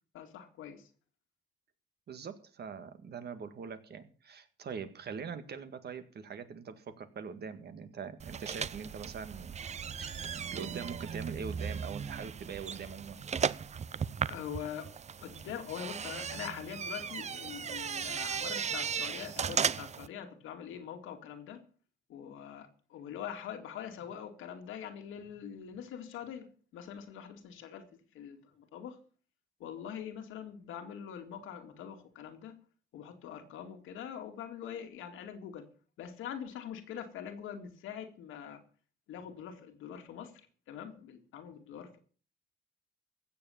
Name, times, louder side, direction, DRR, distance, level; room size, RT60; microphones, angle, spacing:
voice 1, 0.1-0.9 14.3-14.9 15.2-21.7 22.1-27.9 28.1-29.0 29.6-32.6 32.9-35.7 36.0-38.6 39.1-42.0, left 9 dB, 85° left, 2.3 m, -44 dB
voice 2, 2.1-9.6 10.0-13.2, right 6 dB, 55° right, 1.8 m, -43 dB
sound 1, 8.2-20.1, right 7 dB, 35° right, 0.6 m, -36 dB
15.5 x 7.3 x 7.1 m
cardioid pair, 90°, 20 cm